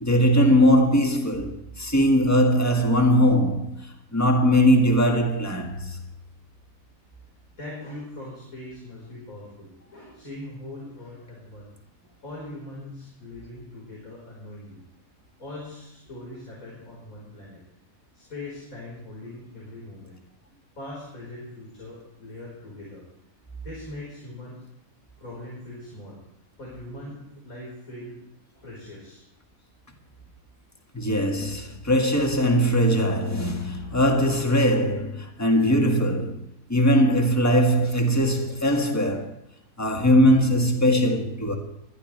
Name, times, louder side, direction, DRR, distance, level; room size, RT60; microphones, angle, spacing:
voice 1, 0.0-6.0 30.9-39.3 39.8-41.6, equal, 10° left, 1.6 m, -21 dB
voice 2, 7.6-11.7 12.2-14.8 15.4-17.6 18.1-20.1 20.7-23.0 23.6-24.6 25.2-26.2 26.6-28.2 28.5-29.2, left 1 dB, 85° left, 5.0 m, -41 dB
21.0 x 12.0 x 3.3 m
omnidirectional pair, 1.4 m